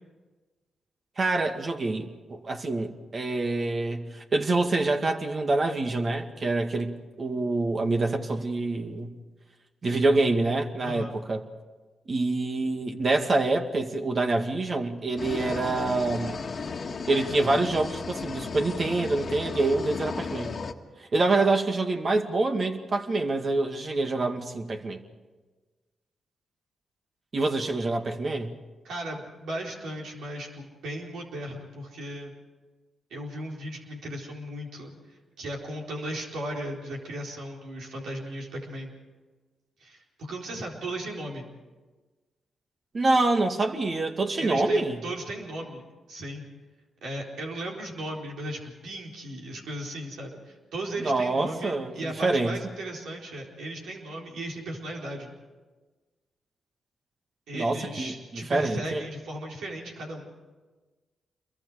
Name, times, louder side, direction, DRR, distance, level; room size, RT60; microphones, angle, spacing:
voice 1, 1.2-9.1 9.8-11.4 12.1-16.4 17.1-20.5 21.1-25.0 27.3-28.5 42.9-45.0 51.0-52.6 57.5-59.0, right 2 dB, 50° right, 5 dB, 2.2 m, -26 dB
voice 2, 10.8-11.1 28.8-32.3 33.1-34.9 35.4-38.9 39.8-41.5 44.4-46.5 47.0-55.3 57.5-60.3, right 1 dB, 80° right, -1 dB, 4.4 m, -36 dB
sound 1, 15.2-20.7, left 4 dB, 55° left, 1.5 m, -35 dB
27.5 x 23.0 x 5.1 m, 1.3 s
supercardioid pair, 50°, 0 cm